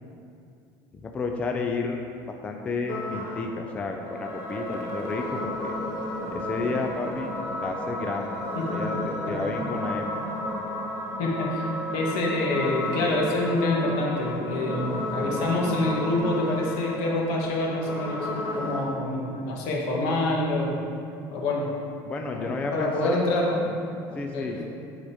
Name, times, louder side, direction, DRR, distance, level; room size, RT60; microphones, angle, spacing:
voice 1, 0.9-5.7 6.3-7.3 7.6-8.3 8.7-10.1 22.1-23.2 24.1-24.6, left 3 dB, 15° left, 2 dB, 0.3 m, -31 dB
sound 1, 2.9-18.9, left 1 dB, 40° left, 1.5 m, -32 dB
voice 2, 8.6-9.5 11.2-11.7 11.9-18.3 18.5-20.7 21.3-21.7 22.2-23.7 24.1-24.6, left 2 dB, 70° left, -2 dB, 1.5 m, -27 dB
10.0 x 4.0 x 4.9 m, 2.5 s
cardioid pair, 180°, 9 cm